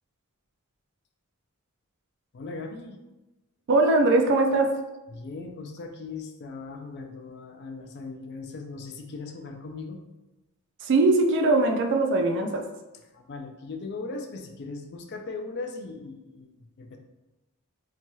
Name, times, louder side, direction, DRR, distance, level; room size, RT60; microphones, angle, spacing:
voice 1, 2.3-3.0 5.1-10.0 13.1-16.5 16.8-17.0, left 3 dB, 50° left, 5 dB, 0.3 m, -38 dB
voice 2, 3.7-4.7 10.8-12.6, right 2 dB, 55° right, 4 dB, 0.3 m, -21 dB
3.0 x 2.7 x 2.2 m, 1.0 s
head